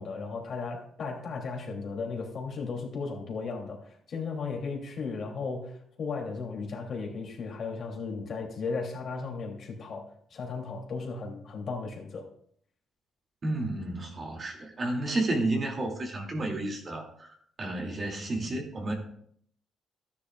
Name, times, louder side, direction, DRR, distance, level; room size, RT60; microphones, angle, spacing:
voice 1, 0.0-12.3, left 4 dB, 55° left, 0 dB, 2.9 m, -35 dB
voice 2, 13.4-18.9, right 2 dB, 40° right, 1 dB, 2.6 m, -31 dB
13.0 x 10.0 x 2.4 m, 0.64 s
cardioid pair, 90°, 0 cm